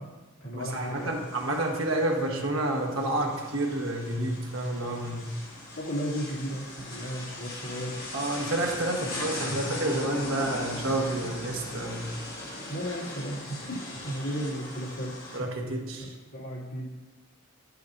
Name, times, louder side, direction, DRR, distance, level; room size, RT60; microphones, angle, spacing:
voice 1, 0.0-1.3 5.8-8.0 9.0-9.5 12.7-15.1 16.0-16.9, equal, 75° left, -7 dB, 2.9 m, -35 dB
voice 2, 0.5-5.4 8.1-12.1 15.3-16.1, right 1 dB, 70° right, 1 dB, 1.2 m, -29 dB
sound 1, 0.6-15.4, left 1 dB, 45° left, 1.8 m, -40 dB
11.0 x 8.3 x 2.6 m, 1.3 s
head